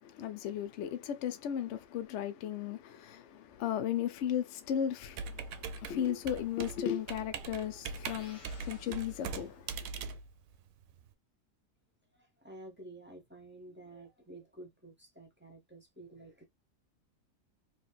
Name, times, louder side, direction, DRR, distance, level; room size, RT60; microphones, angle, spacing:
voice 1, 0.0-10.1, left 9 dB, 65° left, 0.8 m, -36 dB
Computer keyboard, 5.1-11.1, right 5 dB, 80° right, 1.0 m, -42 dB
sound 1, 8.0-9.9, left 3 dB, 30° left, 0.6 m, -56 dB
voice 2, 12.1-16.4, right 2 dB, 10° right, 0.8 m, -51 dB
3.2 x 2.9 x 2.2 m
omnidirectional pair, 1.4 m